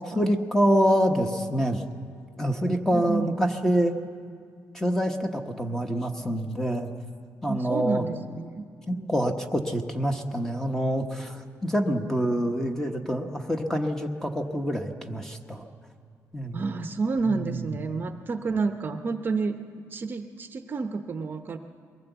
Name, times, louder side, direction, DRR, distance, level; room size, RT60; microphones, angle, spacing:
voice 1, 0.0-1.8 2.4-3.9 4.7-6.9 7.4-8.1 8.9-15.7 16.3-16.6 17.2-17.7, equal, 5° left, 4 dB, 1.0 m, -26 dB
voice 2, 2.9-3.3 7.5-9.1 16.5-19.6 19.9-21.6, right 4 dB, 35° right, 7 dB, 0.8 m, -30 dB
22.5 x 16.5 x 8.0 m, 2.2 s
wide cardioid pair, 175°, 6 cm